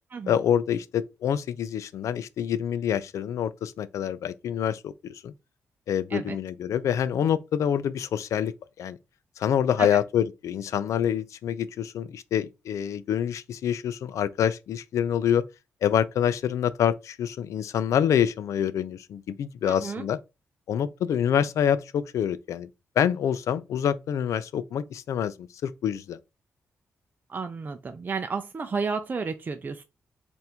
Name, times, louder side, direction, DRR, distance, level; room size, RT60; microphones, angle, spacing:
voice 1, 0.3-5.3 5.9-9.0 9.4-15.4 15.8-20.2 20.7-22.7 23.0-26.2, left 9 dB, 80° left, 0.4 m, -26 dB
voice 2, 19.6-20.1 27.3-29.8, right 4 dB, 35° right, 0.5 m, -32 dB
4.3 x 2.6 x 3.4 m
cardioid pair, 85°, 5 cm